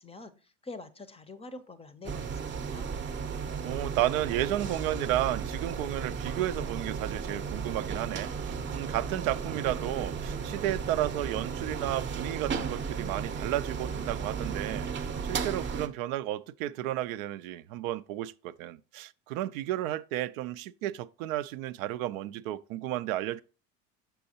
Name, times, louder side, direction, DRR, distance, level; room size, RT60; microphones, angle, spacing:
voice 1, 0.0-2.9, left 3 dB, 15° left, 0.5 m, -46 dB
sound 1, 2.0-15.9, right 6 dB, 30° right, 0.7 m, -35 dB
voice 2, 3.6-23.4, right 13 dB, 80° right, 0.5 m, -33 dB
6.2 x 5.6 x 2.8 m
supercardioid pair, 90°, 40 cm